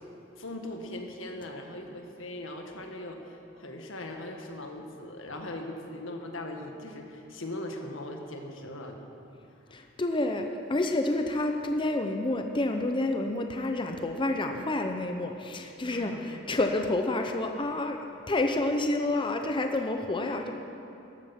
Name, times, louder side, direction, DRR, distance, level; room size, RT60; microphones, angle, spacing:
voice 1, 0.4-9.0 15.9-16.4 20.1-20.5, left 1 dB, 85° left, 3 dB, 1.7 m, -40 dB
voice 2, 9.7-18.0 18.3-20.5, left 2 dB, 25° left, 5 dB, 0.7 m, -29 dB
14.0 x 12.5 x 5.9 m, 2.8 s
head